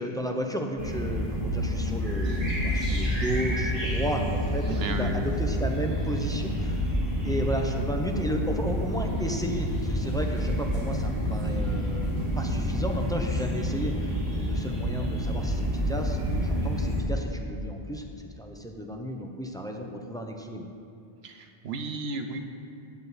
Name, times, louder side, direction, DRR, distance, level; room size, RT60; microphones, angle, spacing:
voice 1, 0.0-6.9 7.2-18.0 18.4-20.6, equal, 5° left, 2 dB, 0.5 m, -33 dB
sound 1, 0.8-17.0, equal, 35° right, 2.2 m, -28 dB
voice 2, 4.7-5.3 21.2-22.4, right 3 dB, 80° right, 5 dB, 1.0 m, -33 dB
9.0 x 8.1 x 4.1 m, 2.8 s
omnidirectional pair, 1.0 m